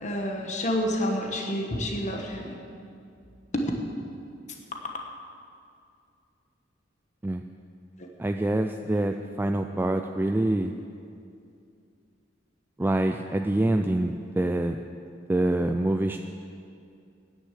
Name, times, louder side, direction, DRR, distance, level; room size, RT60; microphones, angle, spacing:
voice 1, 0.0-2.6 3.5-3.7 8.0-8.1, equal, 40° left, 1 dB, 1.3 m, -29 dB
voice 2, 8.2-10.7 12.8-14.8 15.3-16.2, right 1 dB, 10° right, 5 dB, 0.3 m, -25 dB
10.0 x 9.9 x 7.5 m, 2.5 s
head